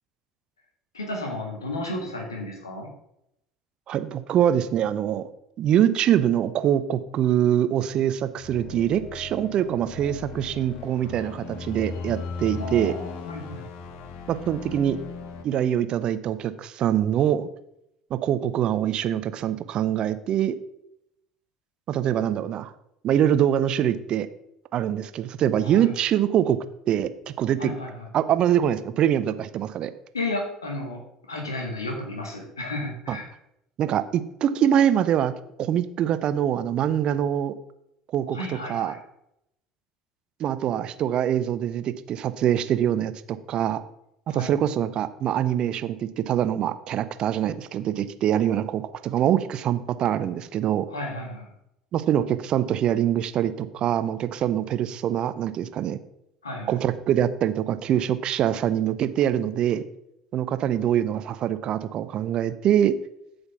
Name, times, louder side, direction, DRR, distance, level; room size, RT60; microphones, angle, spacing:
voice 1, 0.9-2.9 12.6-13.7 25.6-25.9 27.6-28.1 30.1-31.0 31.3-33.3 38.3-39.0 44.3-44.5 50.9-51.5 56.4-56.8, left 2 dB, 80° left, 1 dB, 1.8 m, -33 dB
voice 2, 3.9-5.3 5.6-12.9 14.3-15.0 15.4-17.5 18.1-20.6 21.9-22.7 23.0-24.3 24.7-26.6 26.9-27.7 28.1-29.9 33.1-33.2 33.8-35.3 35.6-37.5 38.1-38.4 38.7-38.9 40.4-43.8 44.3-50.9 51.9-56.0 56.7-59.8 60.3-62.9, right 10 dB, 45° right, 13 dB, 0.6 m, -24 dB
sound 1, 8.4-15.4, left 4 dB, 55° left, 1.0 m, -37 dB
8.1 x 5.2 x 6.0 m, 0.79 s
figure-of-eight pair, 60°, 2 cm